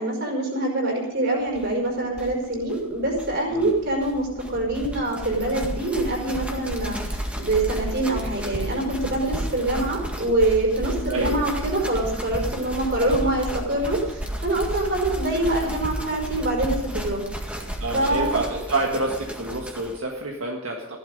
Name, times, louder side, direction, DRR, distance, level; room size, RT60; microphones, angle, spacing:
voice 1, 0.0-17.2 17.5-17.6 17.9-18.4, right 2 dB, 55° right, 0 dB, 5.2 m, -25 dB
sound 1, 1.5-1.6 1.8-1.9 2.1-20.0, equal, 5° right, 1.9 m, -32 dB
voice 2, 11.1-11.4 17.8-21.0, right 2 dB, 75° right, 0 dB, 1.7 m, -27 dB
15.0 x 12.0 x 5.3 m, 0.93 s
head